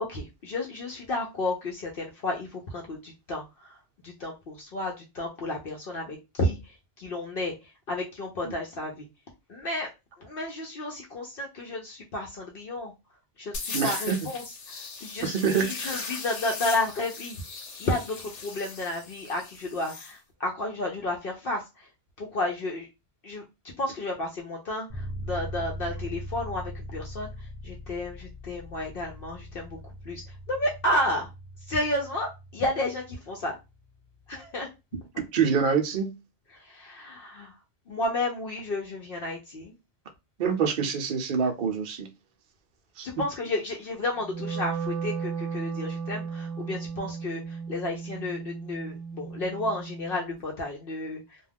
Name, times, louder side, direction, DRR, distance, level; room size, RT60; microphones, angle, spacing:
voice 1, 0.1-9.1 9.5-9.9 10.2-12.9 13.4-21.9 22.2-22.9 23.2-31.3 31.6-33.6 34.3-34.7 36.5-37.6 37.9-39.8 43.0-51.4, left 1 dB, 60° left, 0.8 m, -32 dB
sound 1, 13.5-20.1, left 4 dB, 85° left, 1.0 m, -38 dB
voice 2, 13.7-14.2 15.2-16.0 35.2-36.1 40.4-42.1 43.0-43.1, right 6 dB, 55° right, 0.7 m, -26 dB
sound 2, 24.9-34.6, equal, 25° left, 1.0 m, -41 dB
Wind instrument woodwind instrument, 44.2-50.4, right 5 dB, 80° right, 0.9 m, -35 dB
2.3 x 2.2 x 3.3 m
omnidirectional pair, 1.2 m